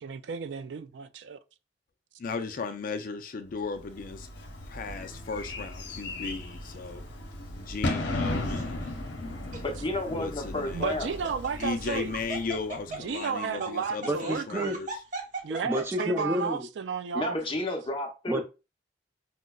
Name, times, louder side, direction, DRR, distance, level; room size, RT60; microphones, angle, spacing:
voice 1, 0.0-1.4 10.7-12.1 12.9-14.8 15.4-17.4, right 6 dB, 80° right, 0.4 m, -33 dB
voice 2, 2.2-4.3 4.7-7.0 7.5-8.8 10.1-11.3 11.6-15.0, left 4 dB, 50° left, 0.4 m, -36 dB
Bird / Fireworks, 3.8-13.0, left 2 dB, 85° left, 0.8 m, -36 dB
Laughter, 8.4-8.9 9.5-9.6 10.9-16.5, right 3 dB, 45° right, 0.8 m, -39 dB
voice 3, 9.6-11.1 17.1-18.4, left 2 dB, 30° left, 0.7 m, -31 dB
voice 4, 14.0-14.8 15.6-16.7 18.3-18.4, equal, 15° right, 0.5 m, -29 dB
4.9 x 2.1 x 2.3 m
head